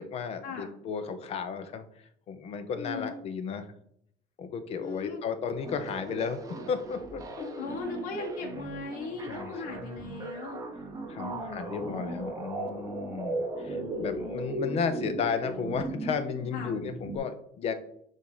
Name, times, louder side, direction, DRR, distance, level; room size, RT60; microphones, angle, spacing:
voice 1, 0.0-1.8 2.3-3.6 4.4-6.4 6.7-7.5 9.3-9.5 11.1-17.7, left 6 dB, 45° left, 9 dB, 0.8 m, -33 dB
voice 2, 2.8-3.2 4.8-5.2 7.4-10.6 11.2-12.4 13.7-14.6 16.5-16.8, left 3 dB, 65° left, 1 dB, 1.1 m, -39 dB
sound 1, 5.6-17.2, right 2 dB, 25° right, 0.7 m, -38 dB
6.9 x 2.8 x 4.8 m, 0.68 s
cardioid pair, 145°, 15 cm